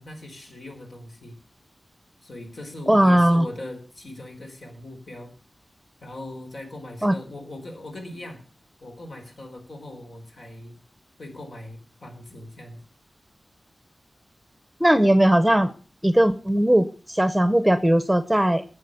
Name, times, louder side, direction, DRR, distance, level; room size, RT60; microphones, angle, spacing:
voice 1, 0.0-1.4 2.2-5.3 6.0-8.4 8.8-10.8 11.2-12.8, left 1 dB, 70° left, 2 dB, 4.6 m, -40 dB
voice 2, 2.9-3.5 7.0-7.2 14.8-15.7 16.0-18.6, right 1 dB, 5° right, 13 dB, 0.9 m, -18 dB
15.0 x 8.9 x 6.6 m, 0.38 s
wide cardioid pair, 90°, 0 cm